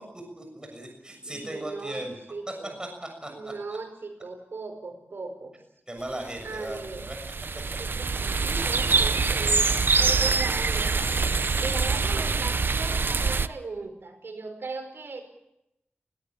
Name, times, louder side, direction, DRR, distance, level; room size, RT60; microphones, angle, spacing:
voice 1, 0.0-2.1 2.6-3.5 5.9-7.2 8.9-9.1 12.1-12.3, right 1 dB, 20° right, 3 dB, 6.7 m, -38 dB
voice 2, 1.1-2.0 2.3-2.8 3.3-5.6 6.4-7.1 7.5-15.2, right 3 dB, 85° right, 5 dB, 5.0 m, -38 dB
sound 1, 6.4-13.5, right 4 dB, 65° right, 0.7 m, -25 dB
21.5 x 18.0 x 8.8 m, 0.86 s
wide cardioid pair, 70°, 4 cm